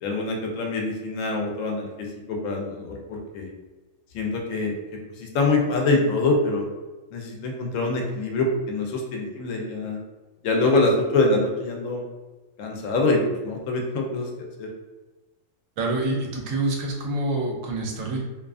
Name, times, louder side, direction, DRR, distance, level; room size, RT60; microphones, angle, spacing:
voice 1, 0.0-1.9 2.3-3.5 4.1-4.7 5.2-6.7 7.1-10.0 10.4-12.0 12.6-14.3 14.6-14.7, left 2 dB, 80° left, 0 dB, 0.9 m, -24 dB
voice 2, 15.8-18.3, right 2 dB, 85° right, 0 dB, 1.0 m, -26 dB
2.6 x 2.3 x 2.3 m, 1.2 s
omnidirectional pair, 1.3 m